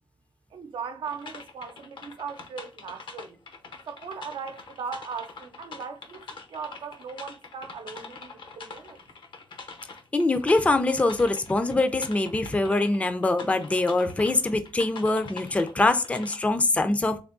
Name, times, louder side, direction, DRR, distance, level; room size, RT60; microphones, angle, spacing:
voice 1, 0.5-3.4 3.9-9.0, right 6 dB, 90° right, 0.6 m, -38 dB
sound 1, 1.0-16.4, left 4 dB, 70° left, 0.7 m, -44 dB
voice 2, 10.1-17.2, left 2 dB, 15° left, 0.4 m, -23 dB
3.5 x 3.4 x 2.5 m
wide cardioid pair, 120°, 9 cm